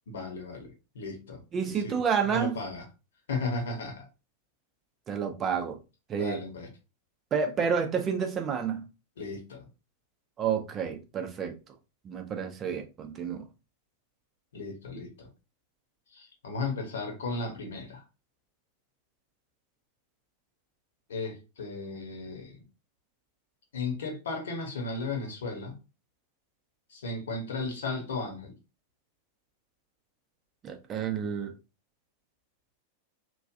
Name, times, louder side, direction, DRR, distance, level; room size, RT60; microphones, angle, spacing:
voice 1, 0.1-2.0 2.2-2.8 3.3-4.1 6.1-6.7 9.2-9.7 14.5-15.3 16.1-18.0 21.1-22.6 23.7-25.8 26.9-28.6, left 3 dB, 65° left, 1.1 m, -35 dB
voice 2, 1.5-2.6 5.1-5.8 6.1-6.4 7.3-8.8 10.4-11.5 12.0-13.4 30.6-31.5, right 7 dB, 25° right, 0.7 m, -29 dB
3.1 x 2.4 x 2.5 m
figure-of-eight pair, 90°, 0 cm